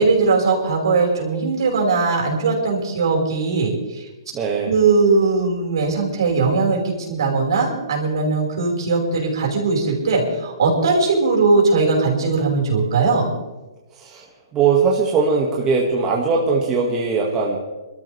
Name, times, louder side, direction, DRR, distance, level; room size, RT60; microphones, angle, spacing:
voice 1, 0.0-4.0 4.6-13.3, right 4 dB, 70° right, -2 dB, 5.3 m, -19 dB
voice 2, 4.3-4.8 13.9-14.3 14.5-17.6, right 5 dB, 20° right, -2 dB, 2.2 m, -20 dB
24.0 x 13.0 x 3.6 m, 1.1 s
hypercardioid pair, 135°, 2 cm